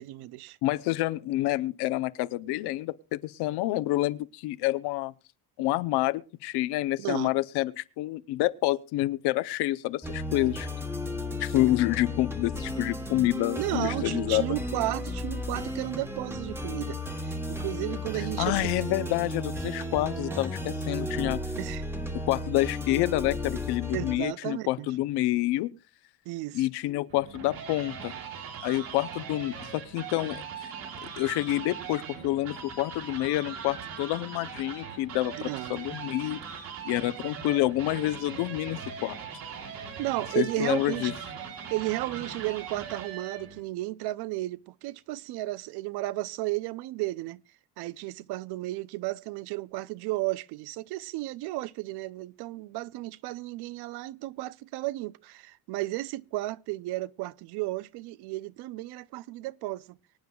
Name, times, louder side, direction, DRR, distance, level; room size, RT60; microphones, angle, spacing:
voice 1, 0.0-0.6 7.0-7.3 13.6-18.7 21.5-21.9 23.9-24.9 26.3-26.6 35.4-35.9 40.0-41.1 41.7-47.4 47.8-60.0, right 18 dB, 80° right, 0.6 m, -33 dB
voice 2, 0.6-5.1 5.6-10.7 11.4-14.5 18.4-21.4 22.3-25.7 26.5-28.1 28.6-30.7 31.2-36.4 36.8-39.2 40.4-41.1, left 16 dB, 90° left, 0.8 m, -28 dB
sound 1, 10.0-24.2, left 1 dB, 5° right, 1.1 m, -34 dB
sound 2, 27.1-43.6, right 6 dB, 60° right, 3.9 m, -40 dB
24.5 x 9.4 x 2.3 m
cardioid pair, 150°, 39 cm